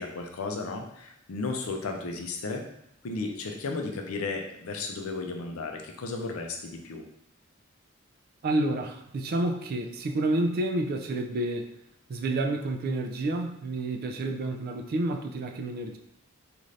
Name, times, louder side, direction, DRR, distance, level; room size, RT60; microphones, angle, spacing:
voice 1, 0.0-2.6 3.0-7.0, left 3 dB, 80° left, 3 dB, 0.5 m, -34 dB
voice 2, 8.4-11.7 12.1-16.0, right 2 dB, 45° right, 4 dB, 0.3 m, -29 dB
2.5 x 2.5 x 3.2 m, 0.76 s
head